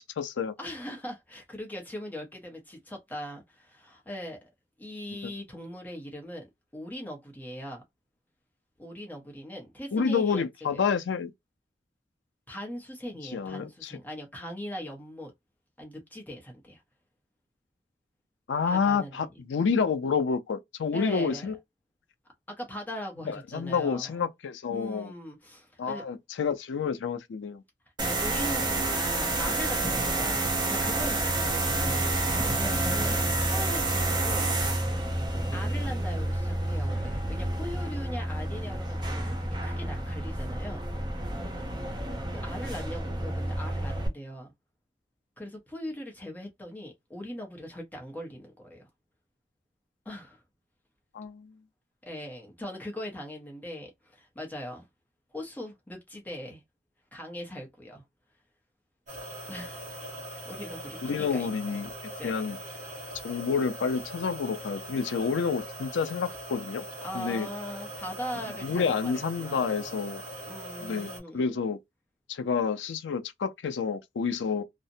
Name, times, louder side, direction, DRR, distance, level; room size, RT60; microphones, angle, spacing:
voice 1, 0.0-0.5 5.2-5.3 9.9-11.3 13.2-13.9 18.5-21.5 23.2-25.1 25.8-27.6 51.1-51.6 61.0-61.9 62.2-62.6 63.2-66.8 67.1-67.5 68.6-70.2 70.8-71.8 72.3-74.6, left 5 dB, 85° left, 0.4 m, -29 dB
voice 2, 0.6-4.5 4.8-6.5 6.7-7.8 8.8-10.4 10.7-10.8 12.5-15.3 15.8-16.8 18.7-19.3 20.9-21.5 22.5-24.2 24.7-26.0 28.0-32.0 32.5-34.5 35.5-40.8 42.3-44.5 45.4-48.9 50.0-50.4 52.0-54.8 55.3-56.6 57.1-58.0 59.5-59.9 60.5-61.5 62.2-62.4 67.0-69.1 69.4-71.4, equal, 10° left, 0.7 m, -40 dB
sound 1, 28.0-44.1, right 2 dB, 25° right, 0.7 m, -29 dB
sound 2, 59.1-71.2, equal, 45° right, 1.3 m, -41 dB
2.5 x 2.1 x 2.6 m
head